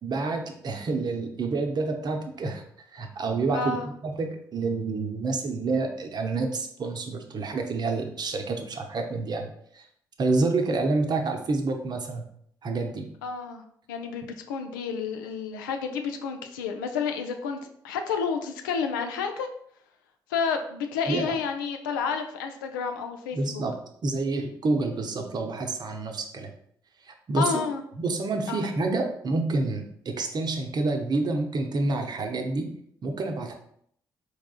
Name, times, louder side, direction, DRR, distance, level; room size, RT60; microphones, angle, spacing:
voice 1, 0.0-2.6 2.9-9.9 10.2-12.3 12.6-13.1 21.1-21.4 23.3-26.5 27.0-27.5 28.0-32.7 33.0-33.5, right 3 dB, 40° right, 4 dB, 0.7 m, -28 dB
voice 2, 3.5-3.9 13.2-13.6 13.9-19.5 20.3-23.6 27.3-27.8 28.5-28.7, left 5 dB, 75° left, 6 dB, 0.4 m, -30 dB
4.7 x 3.5 x 2.3 m, 0.66 s
figure-of-eight pair, 40°, 11 cm